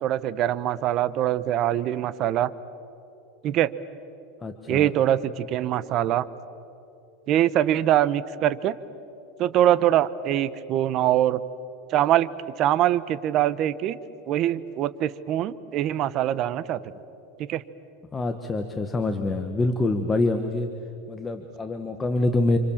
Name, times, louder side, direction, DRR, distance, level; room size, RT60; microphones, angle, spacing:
voice 1, 0.0-2.5 3.4-3.7 4.7-6.3 7.3-8.7 9.4-11.4 11.9-12.3 12.6-14.0 14.3-16.8 17.4-17.6, right 12 dB, 35° right, 16 dB, 0.9 m, -23 dB
voice 2, 4.4-4.9 18.1-20.7 21.1-22.6, left 2 dB, 15° left, 6 dB, 1.2 m, -25 dB
30.0 x 26.5 x 7.3 m, 2.8 s
supercardioid pair, 155°, 0 cm